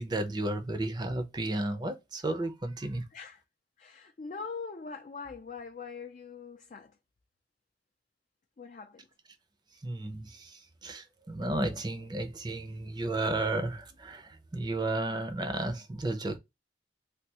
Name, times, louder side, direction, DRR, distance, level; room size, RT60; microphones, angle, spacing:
voice 1, 0.0-3.0 9.8-16.4, right 2 dB, 25° right, 0.6 m, -33 dB
voice 2, 3.1-3.4 3.8-7.0 8.6-9.1, left 5 dB, 45° left, 0.4 m, -42 dB
3.4 x 2.4 x 2.8 m
head